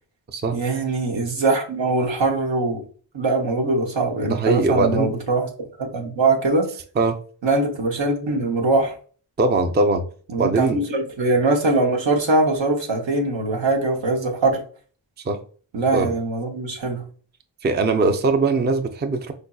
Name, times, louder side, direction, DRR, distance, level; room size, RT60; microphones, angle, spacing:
voice 1, 0.5-2.8 3.1-5.5 5.8-6.7 7.4-8.9 10.3-14.6 15.7-17.0, right 2 dB, 80° right, 0.9 m, -22 dB
voice 2, 4.2-5.1 7.0-7.2 9.4-10.0 10.4-10.8 15.3-15.4 15.9-16.1 17.6-19.3, right 3 dB, 25° right, 0.4 m, -21 dB
4.0 x 2.6 x 2.2 m
cardioid pair, 45°, 45 cm